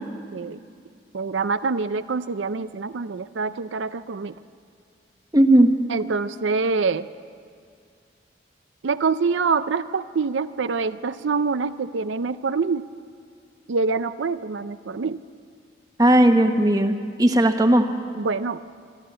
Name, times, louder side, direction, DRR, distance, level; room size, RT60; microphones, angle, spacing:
voice 1, 1.1-4.3 5.9-7.1 8.8-12.9 13.7-15.2 18.1-18.6, right 4 dB, 80° right, 12 dB, 0.5 m, -25 dB
voice 2, 5.3-5.7 16.0-17.9, right 1 dB, 20° right, 6 dB, 1.1 m, -17 dB
27.0 x 12.0 x 8.7 m, 2.3 s
head